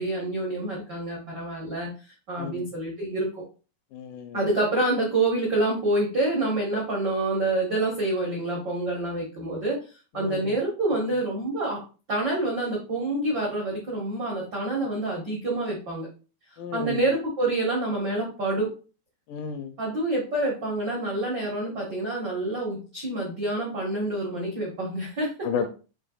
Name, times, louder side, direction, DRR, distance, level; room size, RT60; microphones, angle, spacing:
voice 1, 0.0-1.9 2.3-3.4 4.3-9.8 10.1-11.8 12.1-16.1 16.7-18.7 19.8-25.3, right 2 dB, 75° right, -3 dB, 0.9 m, -27 dB
voice 2, 3.9-4.5 10.2-10.5 16.6-17.0 19.3-19.7 25.4-25.7, left 7 dB, 80° left, 7 dB, 2.0 m, -32 dB
6.7 x 3.2 x 2.3 m, 0.34 s
omnidirectional pair, 4.0 m